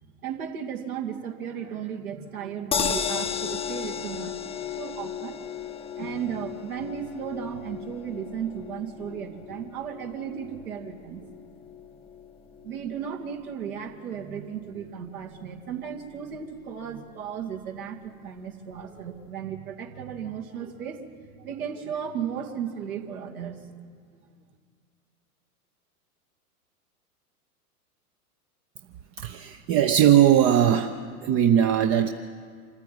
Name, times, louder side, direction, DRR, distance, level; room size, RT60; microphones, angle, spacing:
voice 1, 0.2-5.4 6.0-11.3 12.6-21.0 21.4-23.6, right 8 dB, 65° right, 2 dB, 2.5 m, -35 dB
sound 1, 2.7-14.9 15.3-15.4 15.7-15.8, left 8 dB, 15° left, 0.7 m, -35 dB
voice 2, 29.2-30.9 31.2-32.1, right 10 dB, 30° right, 7 dB, 0.8 m, -19 dB
25.5 x 14.5 x 9.3 m, 2.1 s
figure-of-eight pair, 100°, 46 cm